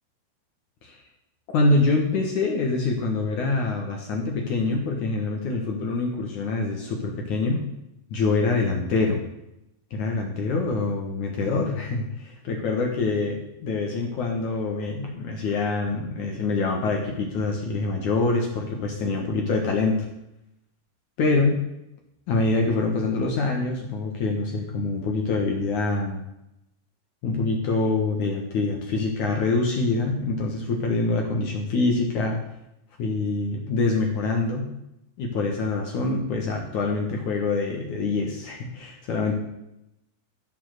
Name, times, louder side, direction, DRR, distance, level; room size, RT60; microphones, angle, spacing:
voice 1, 1.5-7.6 8.1-9.2 9.9-20.1 21.2-21.5 22.3-26.2 27.2-32.4 33.0-34.7 35.2-39.4, left 3 dB, 60° left, 1 dB, 2.2 m, -25 dB
14.0 x 7.9 x 6.6 m, 0.85 s
omnidirectional pair, 5.3 m